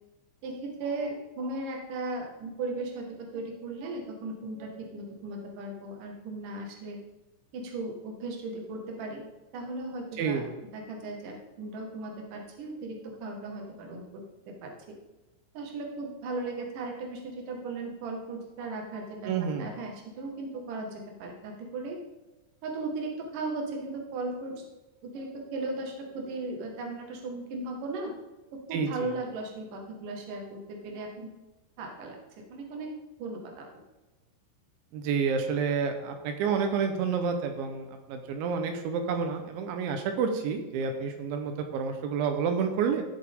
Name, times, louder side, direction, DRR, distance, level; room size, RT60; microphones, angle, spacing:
voice 1, 0.4-7.0 7.5-9.2 9.5-10.4 10.7-14.7 15.5-19.3 19.6-22.0 22.6-24.6 25.0-28.1 28.5-31.3 31.8-32.2 32.5-32.9 33.2-33.7, right 2 dB, 55° right, 1 dB, 2.6 m, -37 dB
voice 2, 19.3-19.7 28.7-29.1 34.9-43.0, right 6 dB, 75° right, 5 dB, 3.1 m, -29 dB
15.5 x 7.4 x 3.7 m, 1.1 s
omnidirectional pair, 5.9 m